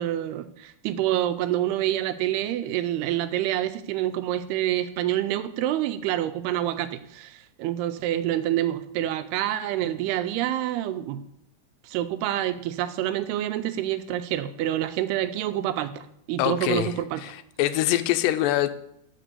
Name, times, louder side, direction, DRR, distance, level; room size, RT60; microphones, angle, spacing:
voice 1, 0.0-11.2 11.8-17.2, right 12 dB, 80° right, 11 dB, 2.5 m, -27 dB
voice 2, 16.4-16.9 17.2-17.3 17.6-18.7, left 14 dB, 90° left, 11 dB, 2.8 m, -23 dB
14.0 x 5.0 x 6.8 m, 0.76 s
omnidirectional pair, 4.8 m